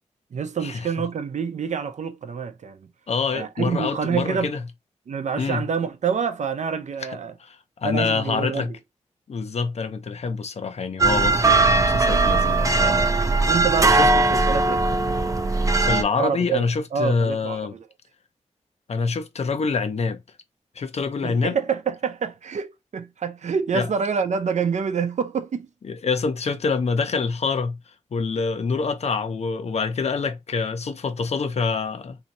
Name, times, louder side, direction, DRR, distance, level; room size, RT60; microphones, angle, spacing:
voice 1, 0.3-2.8 3.3-4.5 5.1-7.3 7.8-8.7 13.5-14.8 16.1-17.8 21.2-25.7, right 6 dB, 70° right, 0.6 m, -27 dB
voice 2, 3.1-4.6 5.4-5.6 7.4-8.7 9.3-13.1 13.9-14.1 15.8-17.7 18.9-20.2 20.8-21.6 23.7-23.9 25.8-27.8 28.1-32.2, left 4 dB, 60° left, 0.6 m, -26 dB
sound 1, 11.0-16.0, right 3 dB, 25° right, 0.5 m, -19 dB
2.8 x 2.7 x 4.1 m
wide cardioid pair, 85°, 12 cm